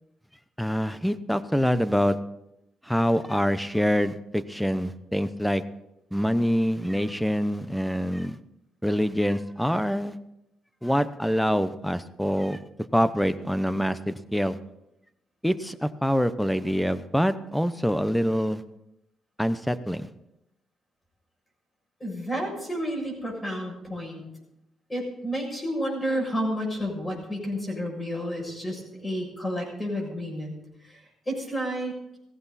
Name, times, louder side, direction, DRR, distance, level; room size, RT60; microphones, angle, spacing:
voice 1, 0.6-2.2 2.9-5.6 6.1-8.4 8.8-10.2 10.8-12.6 12.9-14.6 15.4-18.6 19.4-20.1, equal, ahead, 14 dB, 0.8 m, -25 dB
voice 2, 22.0-24.2 24.9-30.5 30.8-31.9, equal, 20° left, 0 dB, 6.9 m, -31 dB
16.5 x 15.0 x 4.2 m, 0.86 s
cardioid pair, 90°, 0 cm